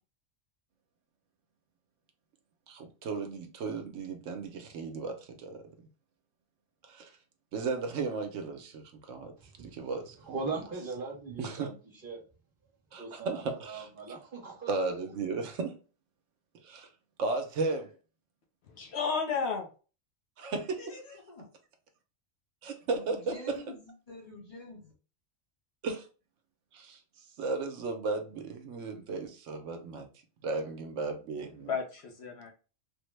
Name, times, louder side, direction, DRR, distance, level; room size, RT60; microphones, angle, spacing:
voice 1, 2.7-5.6 6.8-7.1 7.5-9.3 9.6-10.2 11.4-11.7 12.9-14.2 14.7-15.7 16.6-16.9 17.2-17.9 20.4-21.2 22.6-23.6 25.8-26.1 26.7-27.0 27.4-30.1 30.4-31.7, right 4 dB, 75° right, 1.0 m, -35 dB
voice 2, 10.3-11.7 12.0-12.2 13.0-14.7, right 4 dB, 45° right, 1.1 m, -39 dB
voice 3, 18.8-19.7 20.8-20.9 31.7-32.5, left 5 dB, 65° left, 0.9 m, -32 dB
voice 4, 22.9-24.9, left 2 dB, 35° left, 0.9 m, -47 dB
3.5 x 2.1 x 3.1 m
omnidirectional pair, 1.3 m